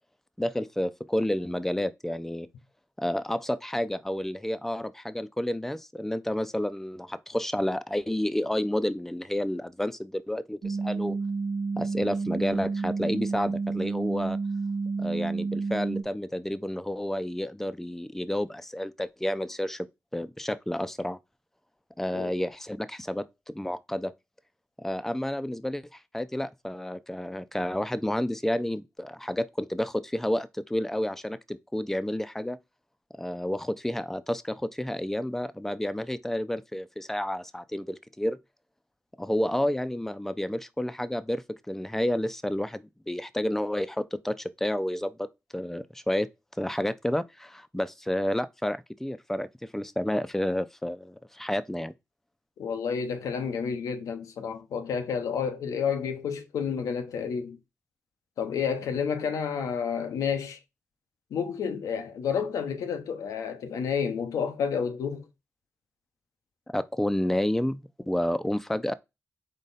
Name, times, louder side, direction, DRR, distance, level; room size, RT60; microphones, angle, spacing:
voice 1, 0.4-2.5 3.0-11.2 11.8-14.4 15.0-21.2 22.0-24.1 24.8-32.6 33.1-38.4 39.2-46.3 46.6-51.9 66.7-68.9, left 1 dB, 5° left, 0.5 m, -30 dB
sound 1, 10.6-16.0, right 4 dB, 65° right, 0.8 m, -30 dB
voice 2, 52.6-57.6 58.4-60.6 61.3-65.3, left 6 dB, 85° left, 0.7 m, -30 dB
4.1 x 3.1 x 3.9 m
supercardioid pair, 40°, 6 cm